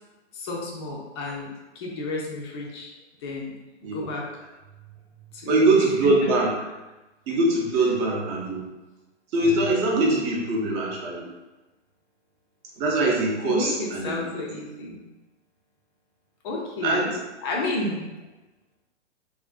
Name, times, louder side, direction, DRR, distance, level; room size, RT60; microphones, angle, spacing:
voice 1, 0.3-1.5 1.8-2.9 3.2-3.5 3.8-4.2 5.3-5.8 13.4-15.0 16.4-17.2 17.4-18.1, left 2 dB, 25° left, -1 dB, 0.4 m, -31 dB
voice 2, 5.5-6.5 7.3-8.6 9.3-11.3 12.8-14.2 16.8-17.1, right 2 dB, 25° right, -2 dB, 0.5 m, -22 dB
3.6 x 2.4 x 2.3 m, 1.1 s
hypercardioid pair, 130°, 36 cm